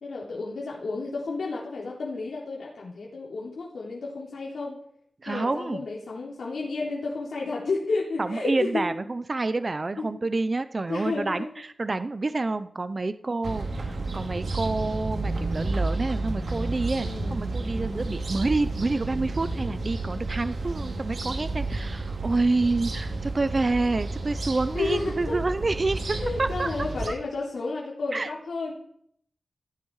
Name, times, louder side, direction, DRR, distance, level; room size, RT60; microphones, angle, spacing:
voice 1, 0.0-4.8 5.2-8.8 10.0-10.1 10.9-11.5 17.0-17.4 24.7-25.4 26.1-28.8, left 3 dB, 85° left, -3 dB, 3.6 m, -31 dB
voice 2, 5.2-5.8 8.2-26.7 28.1-28.3, right 3 dB, 35° right, 12 dB, 0.6 m, -28 dB
sound 1, 13.4-27.1, right 2 dB, 65° right, 3.5 m, -31 dB
16.0 x 15.5 x 4.8 m, 0.68 s
wide cardioid pair, 135°, 0 cm